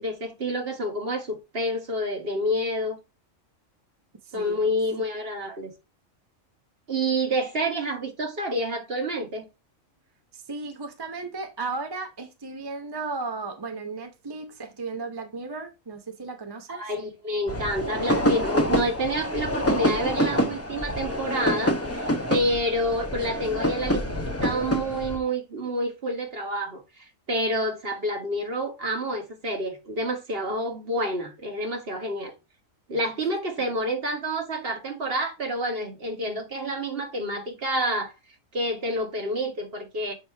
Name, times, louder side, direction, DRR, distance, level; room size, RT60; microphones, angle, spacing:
voice 1, 0.0-3.0 4.3-5.7 6.9-9.5 16.7-32.3 32.9-38.1 38.5-40.1, equal, 50° right, 1.8 m, -28 dB
voice 2, 4.2-4.6 4.9-5.0 10.3-16.8 33.6-33.7, right 3 dB, 25° right, 0.7 m, -35 dB
sound 1, 17.5-25.2, equal, 15° left, 0.7 m, -26 dB
8.3 x 3.1 x 4.5 m
omnidirectional pair, 1.4 m